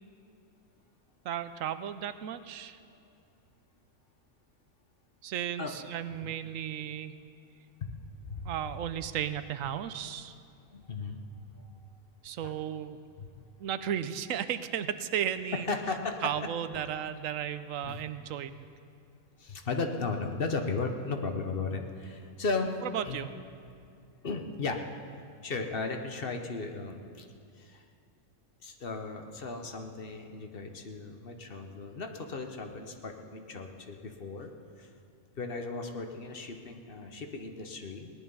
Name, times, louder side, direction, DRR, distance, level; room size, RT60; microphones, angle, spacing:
voice 1, 1.2-2.8 5.2-7.2 8.4-10.3 12.2-13.0 13.6-15.7 16.2-18.7 22.9-23.3, right 10 dB, 90° right, 12 dB, 1.0 m, -34 dB
voice 2, 7.8-8.5 10.7-11.9 12.4-12.6 13.2-13.4 15.5-16.3 16.7-16.9 17.8-18.0 19.4-22.7 23.0-23.2 24.2-24.8 25.4-27.3 27.5-27.9 28.6-34.9 35.4-38.1, left 3 dB, 50° left, 4 dB, 1.1 m, -36 dB
18.0 x 11.0 x 5.5 m, 2.4 s
omnidirectional pair, 1.3 m